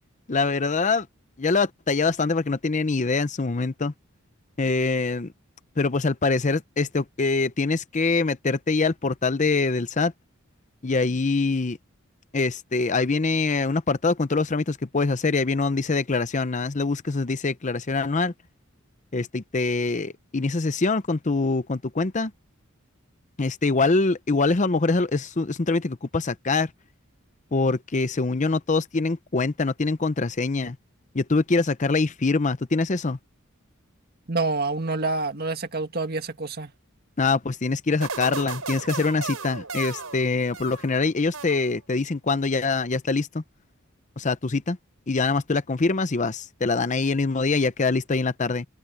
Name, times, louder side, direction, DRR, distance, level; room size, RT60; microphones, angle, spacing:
voice 1, 0.3-1.1 1.4-3.9 4.6-5.3 5.8-10.1 10.8-11.8 12.3-18.3 19.1-22.3 23.4-26.7 27.5-30.8 31.1-33.2 37.2-43.4 44.2-44.8 45.1-48.7, left 3 dB, 35° left, 0.7 m, -24 dB
voice 2, 34.3-36.7, right 3 dB, 50° right, 1.8 m, -27 dB
sound 1, 38.0-41.0 41.3-42.0, right 4 dB, 85° right, 4.9 m, -35 dB
open air
head